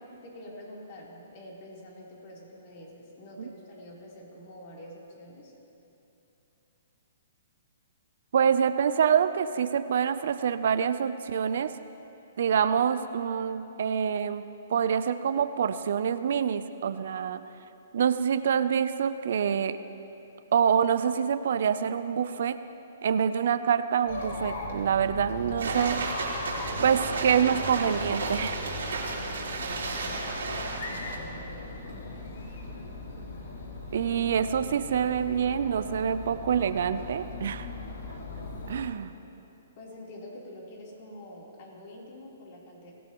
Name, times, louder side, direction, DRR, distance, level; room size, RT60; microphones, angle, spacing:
voice 1, 0.2-5.5 29.3-31.8 39.8-42.9, left 1 dB, 45° left, -3 dB, 3.8 m, -46 dB
voice 2, 8.3-11.8 12.4-17.4 17.9-19.8 20.5-22.6 23.0-26.0 26.8-28.6 33.9-37.7 38.7-39.1, right 7 dB, 65° right, 12 dB, 0.6 m, -26 dB
Chatter, 24.1-38.8, left 2 dB, 70° left, 2.9 m, -39 dB
sound 1, 25.6-31.2, right 3 dB, 85° right, 3.4 m, -33 dB
23.5 x 16.5 x 3.1 m, 3.0 s
hypercardioid pair, 155°, 0 cm